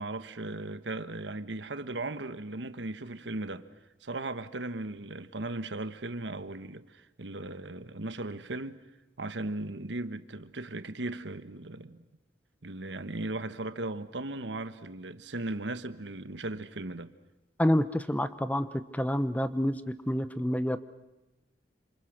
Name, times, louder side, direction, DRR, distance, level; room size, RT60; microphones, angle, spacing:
voice 1, 0.0-3.7 4.0-8.8 9.2-12.0 12.6-17.1, right 2 dB, 90° right, 1.3 m, -37 dB
voice 2, 17.6-18.7 18.9-19.8 20.1-20.8, equal, 10° left, 0.9 m, -27 dB
28.0 x 26.5 x 6.6 m
head